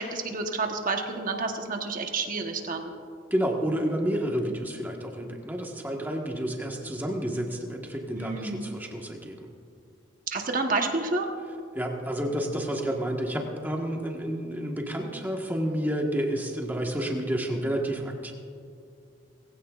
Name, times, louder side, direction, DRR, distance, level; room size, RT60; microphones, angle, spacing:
voice 1, 0.0-2.9 8.1-8.7 10.3-11.3, right 3 dB, 45° right, 4 dB, 1.1 m, -29 dB
voice 2, 3.3-9.5 11.7-18.3, right 1 dB, 10° right, 1 dB, 1.4 m, -30 dB
20.0 x 16.0 x 2.5 m, 2.5 s
head